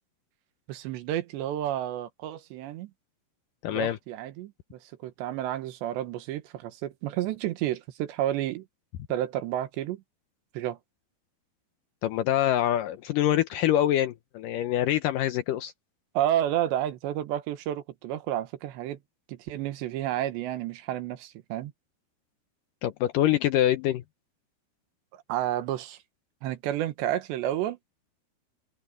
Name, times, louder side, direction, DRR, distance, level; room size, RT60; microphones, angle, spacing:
voice 1, 0.7-2.9 3.7-8.7 9.1-10.0 10.6-10.8 16.2-19.0 19.3-21.7 25.1-26.0 26.4-27.8, right 12 dB, 80° right, 3.5 m, -31 dB
voice 2, 3.6-4.0 12.0-15.7 22.8-24.0, left 12 dB, 85° left, 1.8 m, -25 dB
omnidirectional pair, 5.0 m